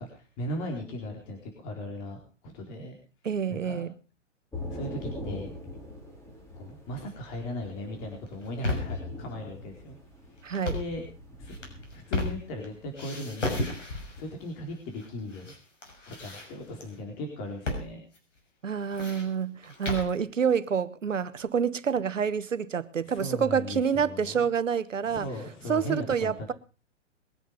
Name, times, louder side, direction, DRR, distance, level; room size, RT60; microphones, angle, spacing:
voice 1, 0.0-3.0 3.5-3.9 4.7-5.5 6.5-10.0 10.6-11.0 11.4-11.6 11.9-13.6 14.1-15.5 16.1-18.0 23.0-24.5 25.1-26.5, left 1 dB, 35° left, 4.3 m, -38 dB
voice 2, 3.2-3.9 10.4-10.7 18.6-25.3 25.7-26.5, right 7 dB, 80° right, 1.3 m, -28 dB
Thunder / Rain, 4.5-14.5, left 1 dB, 5° left, 4.5 m, -42 dB
sound 1, 8.3-9.1 10.5-11.0 11.5-12.7 13.0-14.3 15.0-15.6 15.8-16.9 17.7-17.9 18.1-18.2 18.7-20.2, left 2 dB, 70° left, 6.4 m, -33 dB
22.0 x 9.5 x 5.2 m
figure-of-eight pair, 120°, 37 cm